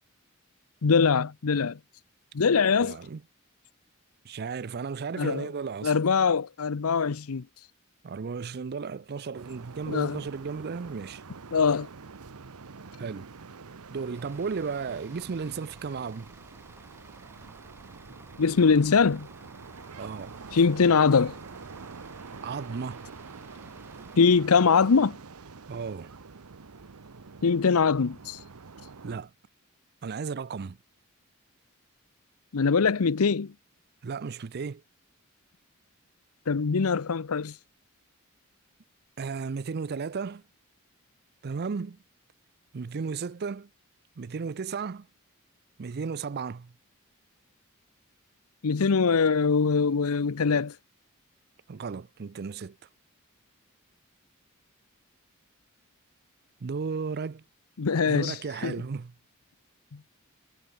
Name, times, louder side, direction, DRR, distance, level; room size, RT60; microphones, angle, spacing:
voice 1, 0.8-1.8 2.3-3.0 5.2-5.5 5.8-7.5 9.9-10.2 11.5-11.9 18.4-19.3 20.5-21.4 24.2-25.2 27.4-28.4 32.5-33.5 36.5-37.5 48.6-50.7 57.8-58.4 58.6-58.7 59.9-60.0, left 5 dB, 75° left, 0.7 m, -22 dB
voice 2, 2.8-3.2 4.2-6.0 8.0-11.2 13.0-13.3 13.9-16.3 20.0-20.3 22.4-23.0 25.7-26.1 29.0-29.3 30.0-30.8 34.0-34.8 39.2-40.4 41.4-42.0 42.7-43.7 44.2-45.1 45.8-46.7 51.7-52.8 56.6-57.4 58.0-59.1, right 5 dB, 45° right, 0.5 m, -34 dB
sound 1, 9.3-29.2, right 4 dB, 85° right, 0.9 m, -46 dB
Bus / Idling, 14.1-24.2, right 2 dB, 10° right, 1.7 m, -54 dB
head